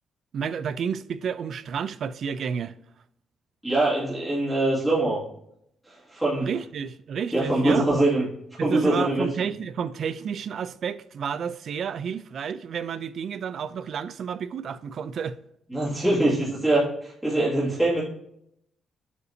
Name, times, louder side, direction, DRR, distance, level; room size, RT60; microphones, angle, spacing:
voice 1, 0.3-2.7 6.3-7.9 8.6-15.4, right 7 dB, 55° right, 0.4 m, -31 dB
voice 2, 3.6-5.2 6.1-6.5 7.3-8.2 8.6-9.3 15.7-18.0, right 1 dB, 5° right, 2.2 m, -23 dB
7.8 x 5.5 x 2.7 m
cardioid pair, 130°, 0 cm